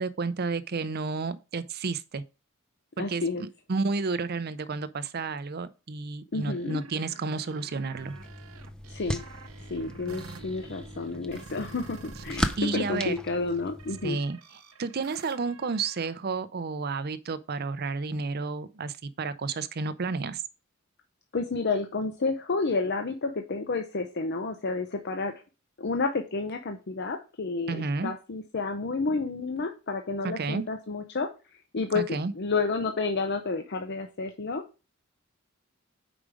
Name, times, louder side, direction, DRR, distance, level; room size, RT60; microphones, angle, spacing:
voice 1, 0.0-2.2 3.0-8.1 12.6-13.1 14.0-14.4 14.8-20.4 27.7-28.1 30.2-30.6 31.9-32.3, right 4 dB, 50° right, 0.6 m, -31 dB
voice 2, 3.0-3.5 6.3-6.8 8.9-9.2 9.7-14.2 21.3-25.3 25.8-31.3 31.7-34.6, left 3 dB, 50° left, 0.7 m, -30 dB
sound 1, 6.4-12.6 12.9-16.1, right 4 dB, 85° right, 0.9 m, -49 dB
sound 2, 8.0-14.1, equal, 5° left, 0.5 m, -37 dB
5.0 x 4.9 x 6.2 m
head